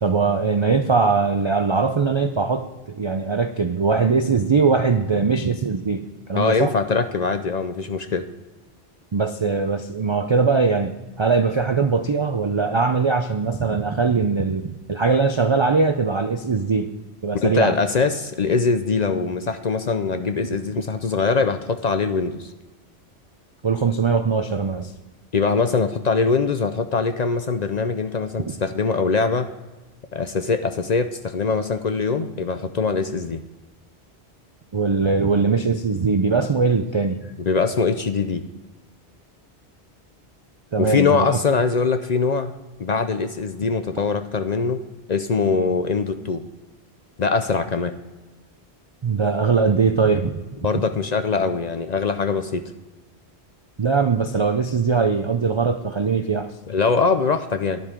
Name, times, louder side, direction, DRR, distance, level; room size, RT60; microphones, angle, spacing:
voice 1, 0.0-6.0 6.3-6.7 9.1-16.9 17.2-17.8 23.6-24.9 34.7-37.3 40.7-41.4 49.0-50.4 53.8-56.5, right 4 dB, 50° right, 8 dB, 0.3 m, -21 dB
voice 2, 6.3-8.2 17.4-22.5 25.3-29.5 30.1-33.4 37.4-38.4 40.8-42.5 42.8-44.8 45.1-46.4 47.2-47.9 50.6-52.6 56.7-57.8, left 4 dB, 50° left, 9 dB, 0.6 m, -22 dB
10.5 x 7.5 x 5.0 m, 1.2 s
omnidirectional pair, 1.1 m